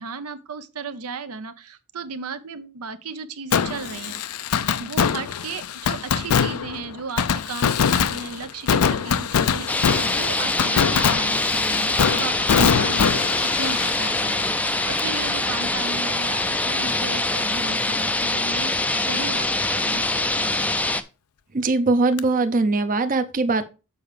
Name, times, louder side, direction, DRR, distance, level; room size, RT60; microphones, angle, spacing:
voice 1, 0.0-4.2 4.8-20.7, right 4 dB, 80° right, 0.7 m, -35 dB
Fireworks, 3.5-15.2 15.5-15.6 22.2-22.3, left 7 dB, 90° left, 0.5 m, -23 dB
sound 1, 9.7-21.0, left 2 dB, 5° left, 0.4 m, -24 dB
voice 2, 21.5-23.7, right 3 dB, 40° right, 0.6 m, -21 dB
7.0 x 4.8 x 4.9 m
head